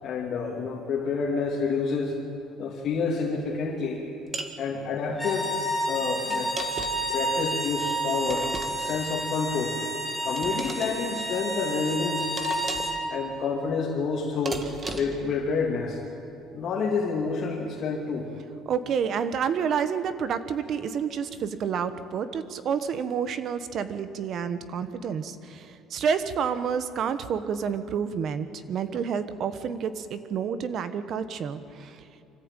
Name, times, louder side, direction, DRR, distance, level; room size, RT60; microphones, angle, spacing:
voice 1, 0.0-2.1 2.6-4.0 4.6-5.5 5.9-6.5 7.1-8.5 8.7-9.8 10.2-12.3 13.1-14.6 15.0-16.0 16.5-18.3, left 5 dB, 45° left, -2 dB, 2.4 m, -28 dB
sound 1, 4.3-4.6 6.3-7.1 8.3-9.0 10.4-10.9 12.4-13.0 14.5-15.3, right 3 dB, 25° right, 1.6 m, -36 dB
sound 2, 5.1-13.0, right 1 dB, ahead, 2.5 m, -30 dB
voice 2, 18.6-32.0, right 7 dB, 45° right, 12 dB, 1.1 m, -29 dB
25.0 x 14.5 x 9.0 m, 2.7 s
cardioid pair, 160°, 0 cm